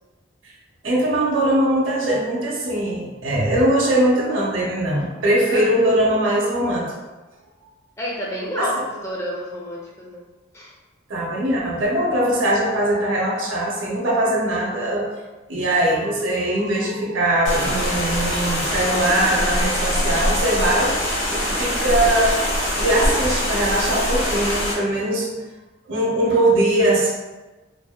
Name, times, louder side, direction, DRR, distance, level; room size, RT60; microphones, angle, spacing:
voice 1, 0.8-6.9 11.1-15.1 15.5-21.0 21.3-22.4 22.7-25.3 25.9-27.1, right 1 dB, 80° right, -4 dB, 0.6 m, -21 dB
voice 2, 8.0-10.2 10.5-10.7 24.9-25.0, equal, 15° left, -3 dB, 0.4 m, -29 dB
sound 1, 17.4-24.7, equal, 90° left, 0.8 m, -23 dB
2.6 x 2.1 x 2.2 m, 1.2 s
head